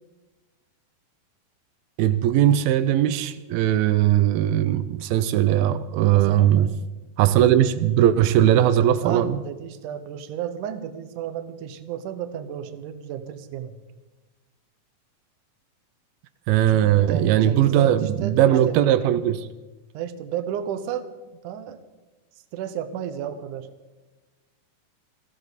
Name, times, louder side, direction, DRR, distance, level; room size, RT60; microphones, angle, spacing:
voice 1, 2.0-6.7 7.2-9.4 16.5-19.5, right 11 dB, 85° right, 2.5 m, -19 dB
voice 2, 6.1-6.7 9.0-13.8 16.7-18.8 19.9-21.1 21.4-21.8 22.5-23.7, right 9 dB, 70° right, 2.3 m, -33 dB
20.0 x 15.0 x 4.0 m
omnidirectional pair, 4.2 m